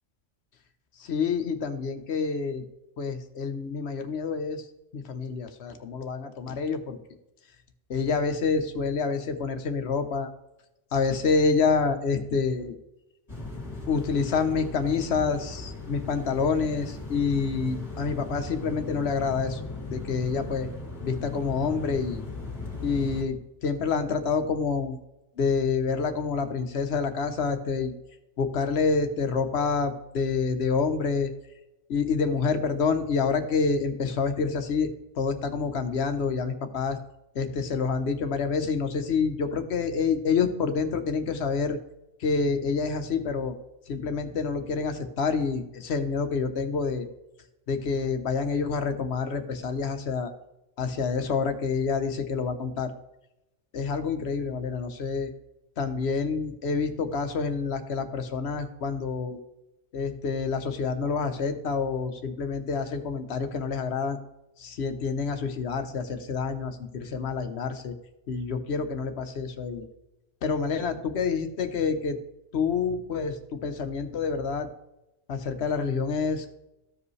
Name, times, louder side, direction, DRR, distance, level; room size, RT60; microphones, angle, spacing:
voice 1, 1.0-2.6 3.0-4.7 4.9-7.0 7.9-10.3 10.9-12.7 13.9-19.6 19.9-20.7 21.0-22.2 22.8-25.0 25.4-27.9 28.4-31.3 31.9-34.9 35.2-37.0 37.3-41.8 42.2-43.5 43.9-47.1 47.7-50.3 50.8-52.9 53.7-55.3 55.8-59.4 59.9-64.2 64.6-67.9 68.3-69.9 70.4-72.2 72.5-74.7 75.3-76.5, left 5 dB, 60° left, 8 dB, 1.1 m, -27 dB
sound 1, 13.3-23.2, left 2 dB, 30° left, 2.2 m, -37 dB
14.5 x 5.0 x 3.2 m, 0.91 s
omnidirectional pair, 1.3 m